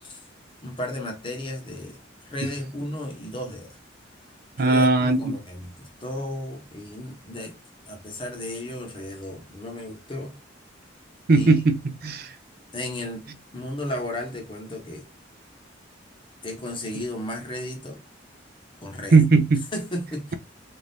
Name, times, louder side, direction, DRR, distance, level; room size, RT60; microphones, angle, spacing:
voice 1, 0.6-3.8 4.6-7.5 7.9-10.3 11.3-11.5 12.7-13.2 13.5-15.0 16.4-18.0 18.8-19.2 19.7-20.3, left 1 dB, 25° left, 0.8 m, -34 dB
voice 2, 4.6-5.3 11.3-11.8 12.0-12.3 19.1-19.6, right 3 dB, 50° right, 0.4 m, -18 dB
2.7 x 2.4 x 3.3 m
head